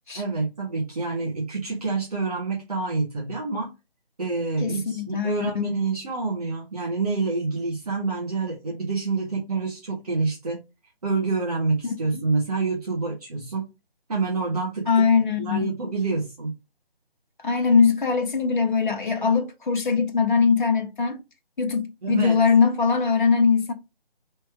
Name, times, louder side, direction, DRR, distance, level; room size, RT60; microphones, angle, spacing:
voice 1, 0.1-3.7 4.2-10.6 11.0-13.6 14.1-15.1 15.4-16.5 22.0-22.4, right 3 dB, 40° right, 1.3 m, -27 dB
voice 2, 4.6-5.6 11.8-12.2 14.9-15.7 17.4-21.2 21.6-23.7, left 5 dB, 55° left, 1.0 m, -21 dB
3.4 x 3.1 x 4.7 m
figure-of-eight pair, 155°, 31 cm